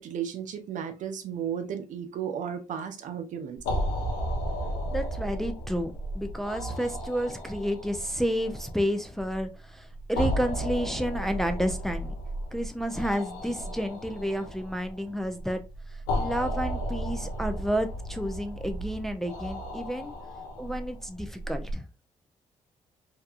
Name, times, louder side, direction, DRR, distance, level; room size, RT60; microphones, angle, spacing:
voice 1, 0.0-3.6, right 8 dB, 65° right, 0.5 m, -34 dB
sound 1, 3.6-21.7, equal, 90° left, 0.6 m, -34 dB
voice 2, 4.9-12.1 12.5-20.1 20.6-21.8, equal, ahead, 0.4 m, -31 dB
2.7 x 2.2 x 2.3 m
supercardioid pair, 65°, 14 cm